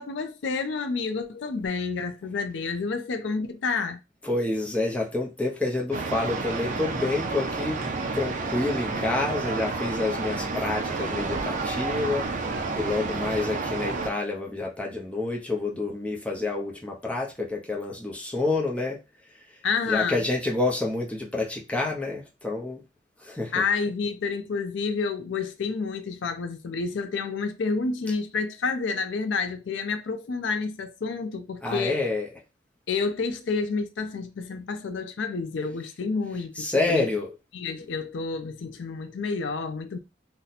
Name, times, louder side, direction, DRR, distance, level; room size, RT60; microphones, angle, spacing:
voice 1, 0.0-4.0 19.6-20.2 23.5-32.0 32.9-37.1 37.5-40.0, left 4 dB, 75° left, 0.4 m, -29 dB
voice 2, 4.2-7.9 8.1-19.0 19.9-22.8 23.2-23.6 31.6-32.3 36.6-37.3, left 2 dB, 5° left, 0.6 m, -28 dB
sound 1, 5.9-14.1, right 3 dB, 40° right, 0.4 m, -30 dB
2.7 x 2.1 x 4.0 m
head